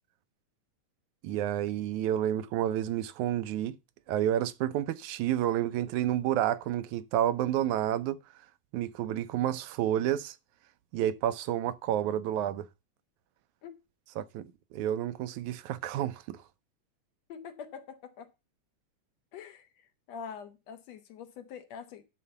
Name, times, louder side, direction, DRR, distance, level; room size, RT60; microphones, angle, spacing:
voice 1, 1.2-3.8 4.1-8.2 8.7-10.4 10.9-12.7 14.2-16.4, right 11 dB, 85° right, 2.2 m, -30 dB
voice 2, 17.3-18.3 19.3-19.7 20.1-22.0, left 7 dB, 65° left, 2.3 m, -44 dB
11.0 x 4.2 x 6.9 m
omnidirectional pair, 3.3 m